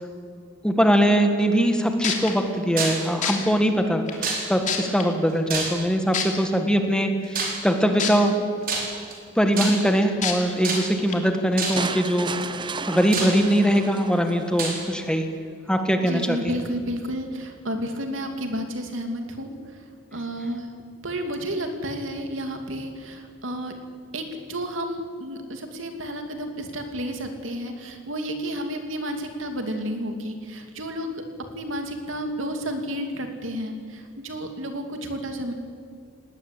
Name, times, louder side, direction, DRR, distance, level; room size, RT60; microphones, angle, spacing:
voice 1, 0.6-8.3 9.4-12.6 12.9-15.3 15.7-16.6, equal, 5° left, 5 dB, 1.7 m, -22 dB
sound 1, 1.7-1.8 2.0-2.3 3.2-3.3 4.1-4.2 4.7-5.0 6.1-6.2 8.0-8.1 8.6-8.7 10.2-10.3 11.1-11.2, left 7 dB, 40° left, 2.9 m, -25 dB
sound 2, 2.8-3.1 4.2-4.7 5.5-6.0 7.3-7.7 8.6-9.1 9.6-10.0 10.6-11.1 11.6-11.9 12.6-12.7 13.1-13.8 14.6-14.8, right 4 dB, 50° right, 4.8 m, -28 dB
sound 3, 11.8-14.8, right 4 dB, 25° right, 0.7 m, -33 dB
voice 2, 16.0-19.8 20.1-20.7 21.0-23.7 24.1-31.3 31.5-35.5, equal, 85° right, 5 dB, 2.7 m, -31 dB
19.5 x 19.0 x 8.4 m, 2.2 s
head